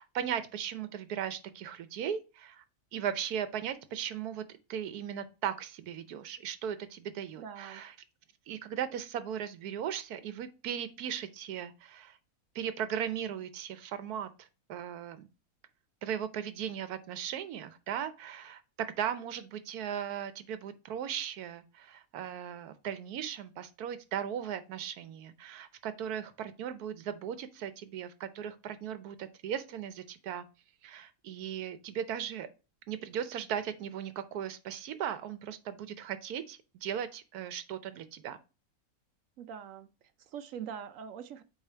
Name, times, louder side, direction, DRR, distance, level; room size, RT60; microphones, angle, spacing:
voice 1, 0.0-2.6 2.9-7.9 8.5-12.2 12.5-15.3 16.0-30.4 30.8-32.5 32.9-38.4, right 9 dB, 85° right, 1.2 m, -37 dB
voice 2, 7.4-7.8 39.4-39.9 40.2-41.4, right 8 dB, 70° right, 0.9 m, -43 dB
8.4 x 3.2 x 4.4 m
omnidirectional pair, 1.6 m